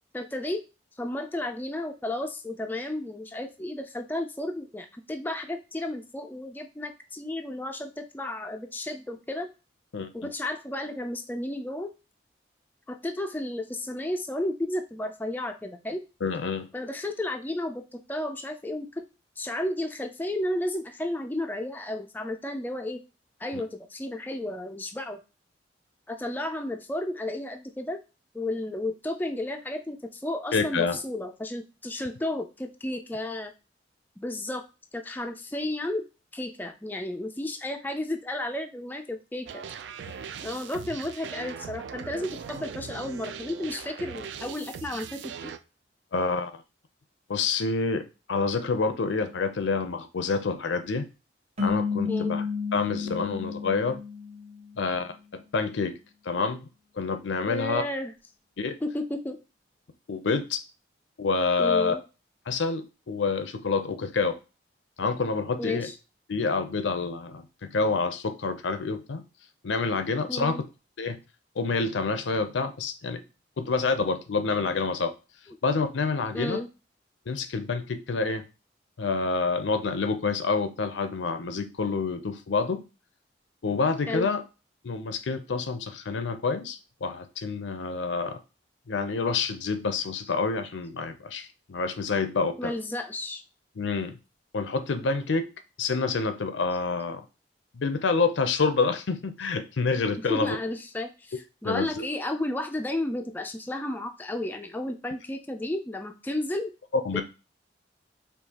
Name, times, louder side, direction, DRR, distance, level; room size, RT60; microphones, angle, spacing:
voice 1, 0.1-0.6 1.0-9.5 10.1-11.9 12.9-16.0 16.7-19.0 19.4-23.0 23.4-25.2 26.1-28.0 28.3-33.5 34.2-34.6 34.9-36.0 36.3-39.6 40.4-45.5 52.0-52.4 57.5-58.1 58.8-59.4 61.6-62.0 65.6-65.9 70.3-70.6 76.3-76.7 84.1-84.3 92.6-93.4 100.3-106.7, left 1 dB, 10° left, 5 dB, 0.3 m, -32 dB
voice 2, 9.9-10.3 16.2-16.7 30.5-31.0 46.1-46.5 47.3-51.1 51.6-52.4 52.7-54.0 54.8-55.9 56.2-56.7 57.0-57.8 58.6-58.8 60.1-60.6 61.2-62.0 62.5-64.4 65.0-65.9 66.3-69.2 69.6-70.6 71.0-71.2 71.6-73.2 73.6-75.1 75.6-76.6 77.3-78.4 79.0-82.8 83.6-84.4 84.8-88.4 88.9-92.7 93.8-94.2 94.5-95.5 95.8-97.2 97.7-100.6 101.6-102.0 107.0-107.2, left 4 dB, 90° left, 8 dB, 0.5 m, -28 dB
sound 1, 39.5-45.6, right 7 dB, 80° right, 0.4 m, -40 dB
sound 2, 51.6-54.9, left 5 dB, 35° right, 0.9 m, -31 dB
4.5 x 2.8 x 2.8 m, 0.30 s
head